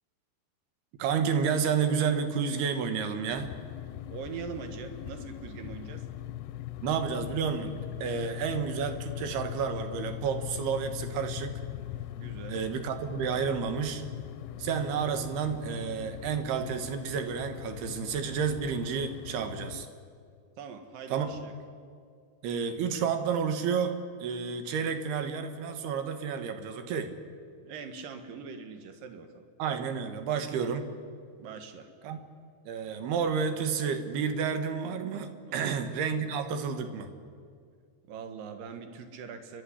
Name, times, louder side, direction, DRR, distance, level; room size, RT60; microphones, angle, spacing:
voice 1, 1.0-3.5 6.8-7.7 8.0-11.6 12.5-14.0 14.6-19.9 21.1-21.3 22.4-27.1 29.6-30.9 32.0-32.2 32.7-37.1, right 6 dB, 85° right, 8 dB, 3.4 m, -30 dB
sound 1, 3.3-19.9, left 12 dB, 80° left, 2.2 m, -40 dB
voice 2, 4.1-6.1 12.2-12.6 20.6-21.5 27.6-29.5 31.4-31.9 35.5-35.9 38.1-39.6, right 6 dB, 65° right, 7 dB, 3.1 m, -42 dB
29.5 x 12.0 x 9.9 m, 2.2 s
omnidirectional pair, 4.6 m